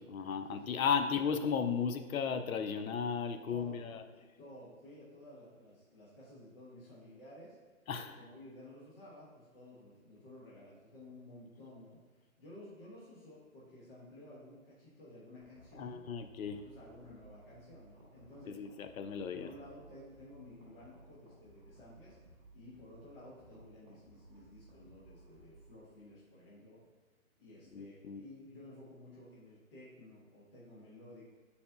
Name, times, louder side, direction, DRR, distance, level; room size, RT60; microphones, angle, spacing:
voice 1, 0.1-4.0 7.9-8.2 15.8-16.6 18.5-19.5 27.7-28.2, left 6 dB, 75° left, 8 dB, 0.5 m, -35 dB
voice 2, 3.3-7.6 8.2-12.0 12.4-16.1 16.6-18.6 19.3-22.2 22.5-26.8 27.4-31.2, left 1 dB, 40° left, -7 dB, 1.1 m, -54 dB
sound 1, 15.4-25.8, right 1 dB, 15° right, 0.8 m, -60 dB
4.7 x 4.2 x 2.3 m, 1.4 s
hypercardioid pair, 165°, 42 cm